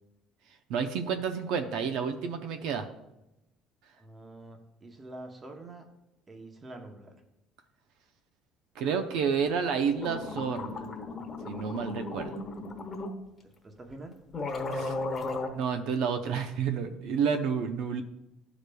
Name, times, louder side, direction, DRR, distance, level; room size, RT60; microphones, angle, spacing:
voice 1, 0.7-2.9 8.8-10.9 11.5-12.4 14.7-14.9 15.5-18.0, right 6 dB, 70° right, 7 dB, 0.5 m, -30 dB
voice 2, 4.0-5.8 6.3-7.2 13.4-14.1, right 2 dB, 15° right, 4 dB, 0.8 m, -46 dB
sound 1, 9.7-9.8 9.9-13.1 13.9-14.0 14.3-15.5, left 2 dB, 15° left, 1.1 m, -35 dB
12.5 x 4.9 x 2.2 m, 0.91 s
cardioid pair, 170°, 0 cm